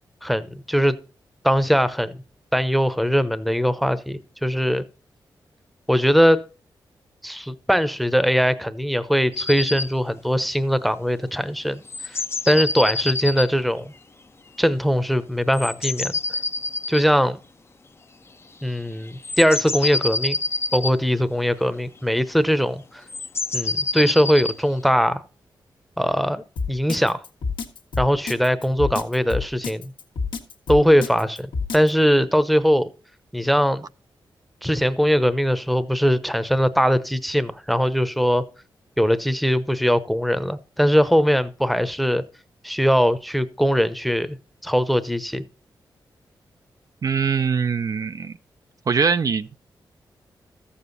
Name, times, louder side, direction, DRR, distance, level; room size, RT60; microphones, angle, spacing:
voice 1, 0.2-1.0 1.4-2.2 2.5-4.8 5.9-6.4 7.2-12.2 12.5-13.9 14.6-16.2 16.9-17.4 18.6-20.4 20.7-23.0 23.5-25.2 26.0-26.4 26.7-27.2 28.0-29.9 30.7-32.9 33.3-33.8 34.6-38.4 39.0-42.2 42.6-44.4 44.6-45.4, equal, ahead, 0.8 m, -21 dB
sound 1, 9.3-9.9 11.9-13.5 15.5-17.1 19.1-21.0 23.1-24.5, left 3 dB, 30° left, 0.6 m, -27 dB
Drum kit, 26.6-31.9, left 4 dB, 85° left, 1.3 m, -28 dB
voice 2, 47.0-48.3 48.9-49.6, right 5 dB, 50° right, 0.5 m, -22 dB
13.5 x 7.1 x 4.0 m
cardioid pair, 80°, 8 cm